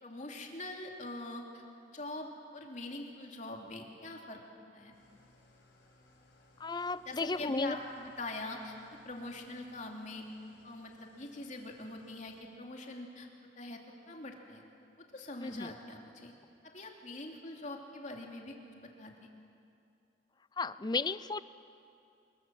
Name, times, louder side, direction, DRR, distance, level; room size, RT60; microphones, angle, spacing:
voice 1, 0.0-1.6 1.9-4.4 4.7-4.9 7.1-7.8 8.0-10.3 10.6-13.3 13.6-13.8 14.1-14.6 15.0-16.3 16.6-19.2, left 2 dB, 40° left, 1 dB, 2.9 m, -43 dB
Engine starting / Idling, 4.9-12.4, left 2 dB, 80° left, 5.3 m, -64 dB
voice 2, 6.6-7.8 15.4-15.7 20.6-21.4, left 3 dB, 25° left, 16 dB, 0.5 m, -34 dB
25.0 x 22.0 x 7.7 m, 2.6 s
head